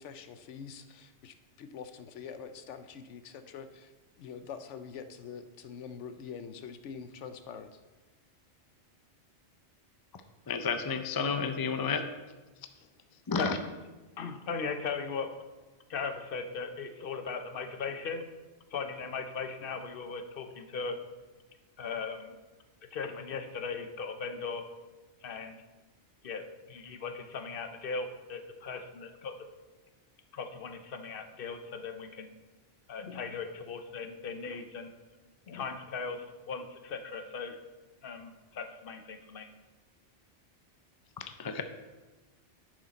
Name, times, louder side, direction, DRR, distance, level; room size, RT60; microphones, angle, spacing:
voice 1, 0.0-7.8, left 6 dB, 80° left, 9 dB, 1.0 m, -45 dB
voice 2, 10.5-12.0 13.3-13.6 41.2-41.6, left 5 dB, 35° left, 8 dB, 0.4 m, -31 dB
voice 3, 14.2-15.3 15.9-18.2 18.7-21.0 21.8-22.3 22.9-24.6 25.2-25.6 26.2-29.3 30.3-32.3 32.9-34.9 35.5-37.6 38.0-39.5, left 5 dB, 55° left, 7 dB, 0.9 m, -38 dB
10.5 x 6.3 x 4.1 m, 1.2 s
omnidirectional pair, 1.2 m